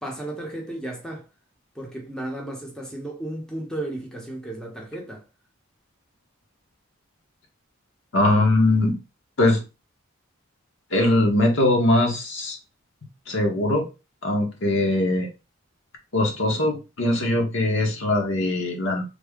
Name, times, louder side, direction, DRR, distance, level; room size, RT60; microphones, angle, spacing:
voice 1, 0.0-1.3 1.7-5.2, right 1 dB, 5° left, 0.7 m, -34 dB
voice 2, 8.1-8.9 9.4-9.6 10.9-12.6 13.3-13.8 14.2-15.3 16.1-19.0, left 1 dB, 65° left, 1.0 m, -21 dB
3.5 x 2.1 x 3.5 m
head